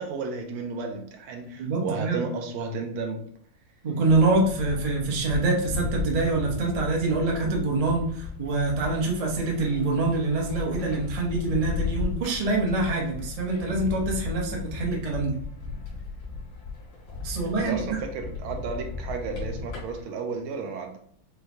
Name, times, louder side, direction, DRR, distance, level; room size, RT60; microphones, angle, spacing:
voice 1, 0.0-3.2 17.6-21.0, right 4 dB, 80° right, 4 dB, 1.6 m, -33 dB
voice 2, 1.6-2.3 3.8-15.4 17.2-18.0, right 3 dB, 50° right, -2 dB, 0.4 m, -25 dB
sound 1, 4.1-20.0, left 5 dB, 85° left, 2.7 m, -35 dB
6.5 x 2.2 x 2.7 m, 0.65 s
omnidirectional pair, 2.3 m